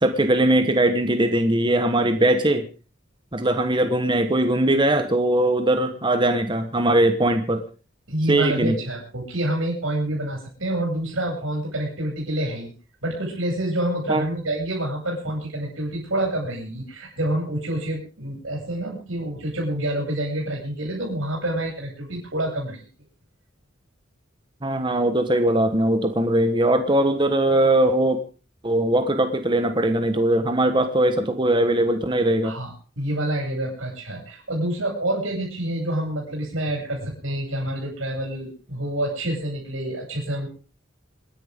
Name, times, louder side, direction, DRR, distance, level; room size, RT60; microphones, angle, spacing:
voice 1, 0.0-2.7 3.3-7.6 8.3-8.7 14.1-14.2 24.6-28.2 28.6-32.5, right 1 dB, 25° right, 7 dB, 1.3 m, -20 dB
voice 2, 8.1-12.7 13.0-22.8 32.4-40.5, right 1 dB, 85° right, -1 dB, 6.6 m, -27 dB
27.5 x 10.5 x 3.7 m, 0.36 s
head